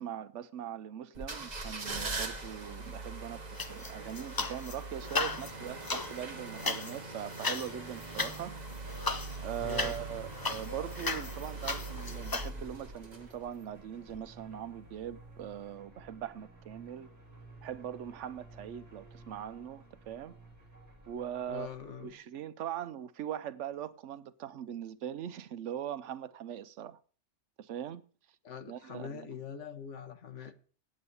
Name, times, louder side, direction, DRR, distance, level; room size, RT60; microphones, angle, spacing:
voice 1, 0.0-3.4 3.7-17.1 17.6-20.3 21.1-21.7 22.0-27.0 27.6-28.0 28.6-29.3, right 10 dB, 85° right, 1.0 m, -41 dB
sound 1, 1.2-13.6 14.1-14.2, right 3 dB, 35° right, 1.4 m, -42 dB
sound 2, 3.6-4.8 5.0-12.5, left 3 dB, 25° left, 0.5 m, -36 dB
sound 3, 9.2-22.1, right 2 dB, 15° right, 5.8 m, -55 dB
voice 2, 9.6-10.0 21.5-22.1 28.4-30.5, left 7 dB, 85° left, 1.5 m, -43 dB
8.6 x 8.6 x 6.7 m
omnidirectional pair, 1.2 m